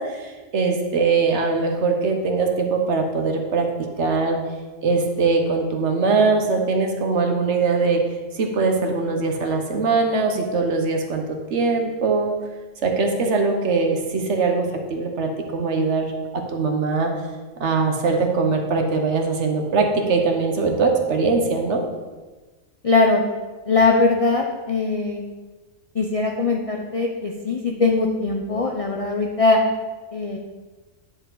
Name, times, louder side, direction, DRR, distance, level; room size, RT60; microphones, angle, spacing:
voice 1, 0.0-3.7 4.0-4.4 4.8-8.1 8.3-11.2 11.5-12.3 12.8-16.1 16.3-17.1 17.6-21.8, right 4 dB, 60° right, 3 dB, 1.2 m, -21 dB
voice 2, 22.8-23.2 23.7-25.2 25.9-29.6 30.1-30.4, left 3 dB, 45° left, 1 dB, 0.4 m, -20 dB
10.0 x 4.6 x 3.9 m, 1.3 s
omnidirectional pair, 1.4 m